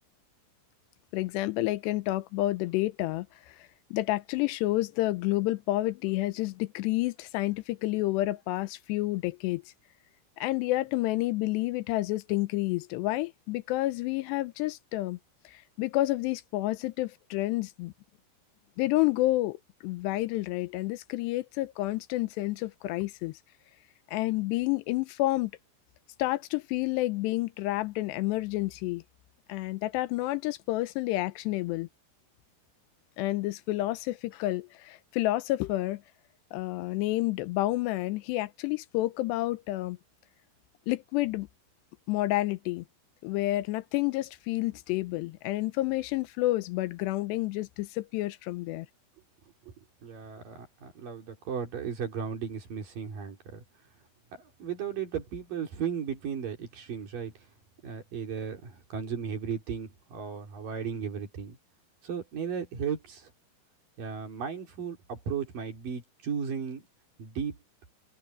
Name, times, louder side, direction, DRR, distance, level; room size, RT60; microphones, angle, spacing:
voice 1, 1.1-3.5 3.9-9.6 10.4-15.2 15.5-17.9 18.8-23.4 24.1-25.5 26.2-29.0 29.5-31.9 33.2-36.0 36.5-40.0 40.9-41.5 42.1-42.8 43.2-48.9, left 17 dB, 85° left, 2.9 m, -29 dB
voice 2, 50.0-53.6 54.3-57.3 57.8-61.6 62.0-63.3 64.0-66.8 67.2-67.6, right 7 dB, 55° right, 4.9 m, -35 dB
open air
omnidirectional pair, 4.9 m